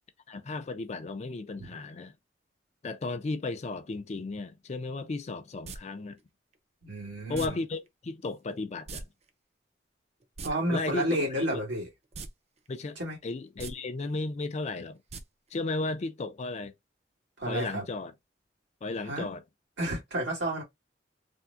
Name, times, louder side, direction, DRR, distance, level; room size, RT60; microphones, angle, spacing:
voice 1, 0.3-2.1 2.8-6.2 7.3-9.1 10.7-11.6 12.7-15.0 15.5-16.7 17.5-18.1 18.8-19.4, left 3 dB, 40° left, 0.4 m, -34 dB
sound 1, 5.6-5.8 7.3-7.5 8.9-9.0 9.3-9.4 10.2-10.5 12.1-12.3 12.7-12.8 13.5-13.7 15.1-15.2 15.5-15.6, right 4 dB, 35° right, 0.4 m, -39 dB
voice 2, 6.8-7.6 10.4-11.9 13.0-13.2 17.4-17.8 19.0-19.3 19.8-20.6, right 1 dB, 85° right, 1.9 m, -31 dB
3.5 x 2.1 x 2.6 m
head